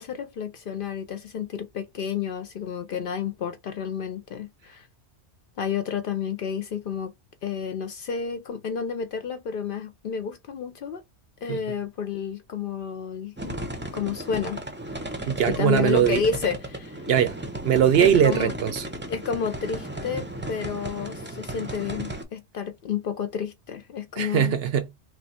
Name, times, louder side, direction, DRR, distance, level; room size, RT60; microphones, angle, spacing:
voice 1, 0.0-4.9 5.6-7.1 7.4-11.0 11.4-13.6 13.9-14.6 15.5-17.0 18.0-18.5 19.1-24.6, left 7 dB, 60° left, 0.6 m, -30 dB
sound 1, 13.4-22.2, right 1 dB, 15° right, 0.4 m, -35 dB
voice 2, 15.2-16.2 17.1-17.4 17.6-18.9 24.2-24.9, right 9 dB, 65° right, 0.7 m, -21 dB
3.1 x 2.2 x 4.1 m
omnidirectional pair, 1.2 m